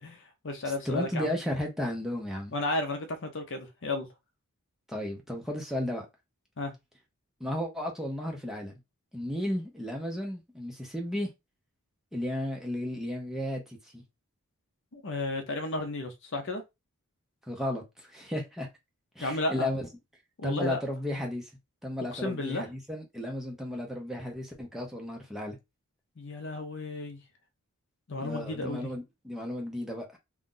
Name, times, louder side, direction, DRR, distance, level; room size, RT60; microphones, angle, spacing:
voice 1, 0.0-1.3 2.5-4.1 6.6-6.7 14.9-16.6 19.2-19.7 20.4-20.8 22.1-22.6 26.2-27.2 28.1-28.9, left 2 dB, 55° left, 0.7 m, -33 dB
voice 2, 0.8-2.5 4.9-6.1 7.4-8.8 9.1-11.3 12.1-14.0 17.5-18.7 19.2-19.9 20.4-21.5 21.8-25.6 28.2-30.2, left 1 dB, ahead, 0.7 m, -34 dB
2.6 x 2.4 x 3.8 m
head